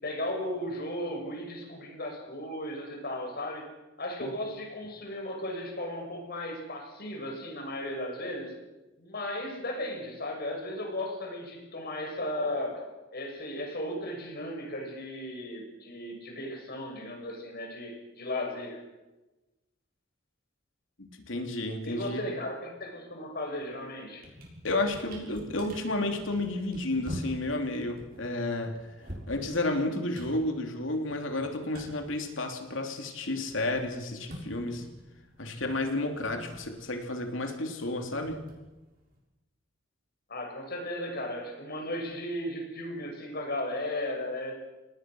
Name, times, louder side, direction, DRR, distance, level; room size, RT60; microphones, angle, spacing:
voice 1, 0.0-3.7 4.0-8.5 9.0-18.8 21.8-24.3 40.3-44.5, left 1 dB, 55° left, 2 dB, 6.5 m, -35 dB
voice 2, 21.0-22.2 24.6-28.7 29.3-34.9 35.4-38.4, left 2 dB, 75° left, 4 dB, 3.2 m, -31 dB
sound 1, 23.6-23.8 24.1-33.0 33.2-39.2, equal, 50° right, 6.7 m, -46 dB
27.5 x 19.5 x 6.3 m, 1.1 s
head